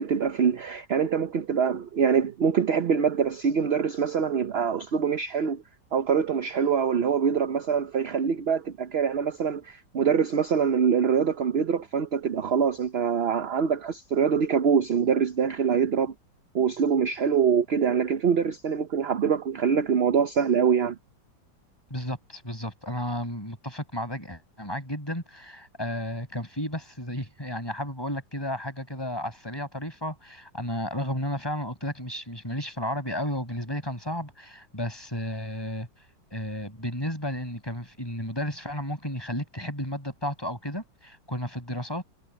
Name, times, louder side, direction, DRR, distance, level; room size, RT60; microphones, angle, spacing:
voice 1, 0.0-5.6 5.9-16.1 16.5-21.0, right 7 dB, 50° right, 0.8 m, -24 dB
voice 2, 21.9-35.9 36.3-42.0, equal, 10° left, 6.4 m, -33 dB
omnidirectional pair, 1.9 m